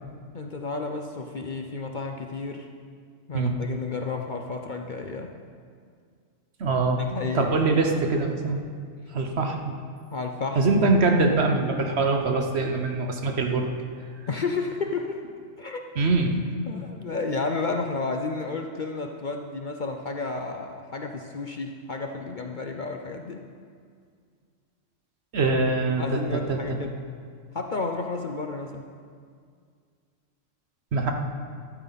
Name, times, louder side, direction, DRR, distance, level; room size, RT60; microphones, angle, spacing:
voice 1, 0.3-2.7 3.3-5.3 7.1-7.5 10.1-10.6 14.3-15.2 15.6-15.8 16.7-23.4 26.0-26.9 27.5-28.8, left 3 dB, 50° left, 4 dB, 0.7 m, -31 dB
voice 2, 6.6-7.1 7.3-8.6 9.1-9.7 10.5-13.7 16.0-16.3 25.3-26.2 26.5-26.8 30.9-31.1, right 3 dB, 55° right, 4 dB, 1.2 m, -23 dB
13.0 x 12.0 x 4.1 m, 2.1 s
omnidirectional pair, 1.3 m